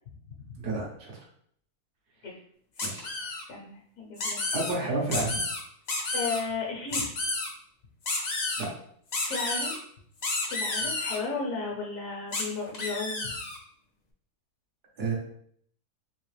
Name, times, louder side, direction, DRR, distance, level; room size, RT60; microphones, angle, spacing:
voice 1, 0.6-1.1 2.8-3.1 4.5-5.3 8.6-8.7 15.0-15.1, right 3 dB, 80° right, -3 dB, 1.6 m, -30 dB
sound 1, 2.8-3.4 4.2-4.7 5.1-5.6 5.9-6.4 6.9-7.5 8.1-8.6 9.1-9.8 10.2-11.2 12.3-12.4 12.7-13.6, left 2 dB, 85° left, 0.3 m, -31 dB
voice 2, 3.5-4.4 4.8-4.9 6.1-7.1 9.3-9.8 10.5-13.4, left 4 dB, 65° left, -2 dB, 1.3 m, -34 dB
3.8 x 2.9 x 3.2 m, 0.64 s
omnidirectional pair, 1.6 m